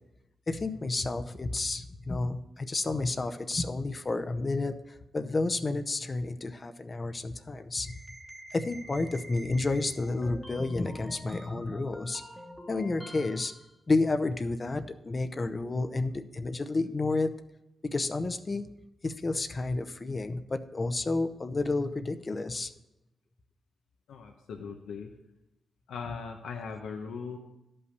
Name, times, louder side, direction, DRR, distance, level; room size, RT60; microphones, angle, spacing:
voice 1, 0.5-4.8 5.1-7.9 8.5-12.2 12.7-13.5 13.9-17.3 17.8-18.7 19.0-22.7, left 3 dB, 35° left, 9 dB, 0.7 m, -30 dB
sound 1, 7.8-13.7, equal, ahead, 1.2 m, -47 dB
voice 2, 24.1-25.1 25.9-27.4, left 5 dB, 90° left, 3 dB, 0.9 m, -39 dB
11.5 x 5.5 x 6.7 m, 0.91 s
cardioid pair, 80°, 0 cm